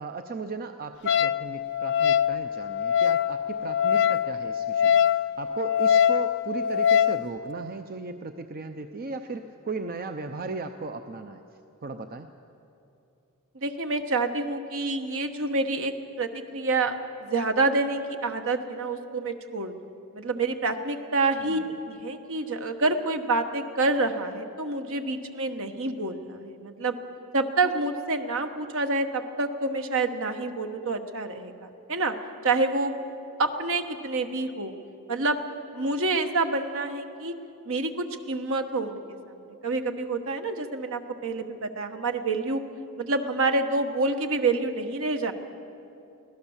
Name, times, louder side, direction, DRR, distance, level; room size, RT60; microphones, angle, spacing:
voice 1, 0.0-11.4 11.8-12.3 21.4-21.7, right 3 dB, 40° right, 7 dB, 0.6 m, -36 dB
Wind instrument woodwind instrument, 1.1-7.2, left 9 dB, 55° left, 0.4 m, -23 dB
voice 2, 13.5-15.9 16.2-19.7 20.1-27.0 27.3-32.1 32.4-32.9 33.4-34.7 35.1-35.4 35.7-37.3 37.6-42.6 43.0-45.3, right 3 dB, 65° right, 7 dB, 1.3 m, -27 dB
24.0 x 17.0 x 7.2 m, 2.8 s
head